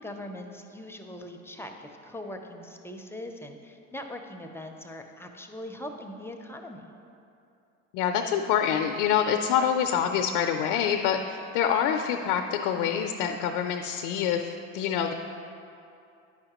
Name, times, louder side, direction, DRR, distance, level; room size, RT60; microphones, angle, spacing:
voice 1, 0.0-6.9, left 1 dB, 5° left, 4 dB, 0.5 m, -41 dB
voice 2, 7.9-15.1, left 8 dB, 70° left, 5 dB, 0.5 m, -26 dB
9.5 x 5.7 x 3.0 m, 2.6 s
hypercardioid pair, 75°, 38 cm